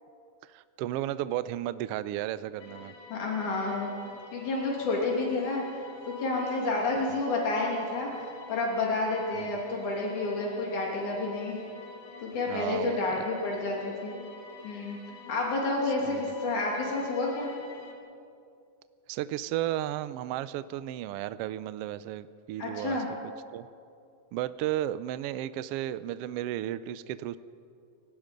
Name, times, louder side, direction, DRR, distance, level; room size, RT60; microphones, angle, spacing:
voice 1, 0.4-2.9 9.3-9.6 12.5-13.0 16.0-16.2 19.1-23.0 23.5-23.7 24.3-27.4, right 13 dB, 90° right, 14 dB, 1.3 m, -33 dB
sound 1, 2.6-17.9, left 3 dB, 40° left, 2.7 m, -48 dB
voice 2, 3.1-3.9 4.3-5.6 6.1-11.7 12.2-14.2 14.6-15.0 15.3-17.5 22.6-23.1, left 2 dB, 90° left, -2 dB, 4.3 m, -30 dB
29.5 x 17.5 x 5.2 m, 2.5 s
omnidirectional pair, 3.4 m